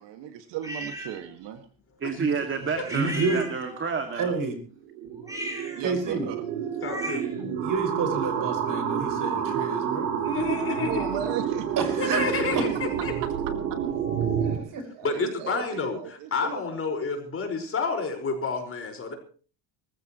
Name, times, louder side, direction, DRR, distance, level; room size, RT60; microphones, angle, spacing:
voice 1, 0.0-1.6 5.7-6.4 10.8-11.8 14.4-16.8 17.0-17.1, right 9 dB, 55° right, 7 dB, 2.1 m, -36 dB
sound 1, 0.6-1.1 2.9-3.9 5.2-7.4, equal, 5° right, 7.2 m, -37 dB
voice 2, 2.0-4.3, right 5 dB, 25° right, 6 dB, 2.3 m, -29 dB
voice 3, 2.9-3.5 4.2-4.6 5.8-6.3 7.6-10.1 11.8-12.3 12.5-12.7 14.5-14.8, right 4 dB, 40° right, 6 dB, 5.9 m, -29 dB
sound 2, 4.8-14.6, right 8 dB, 85° right, 4.4 m, -29 dB
voice 4, 6.8-7.3 10.2-11.1 12.0-13.1 15.0-19.1, left 4 dB, 25° left, 4 dB, 5.2 m, -29 dB
24.5 x 15.0 x 3.1 m, 0.40 s
supercardioid pair, 120°, 49 cm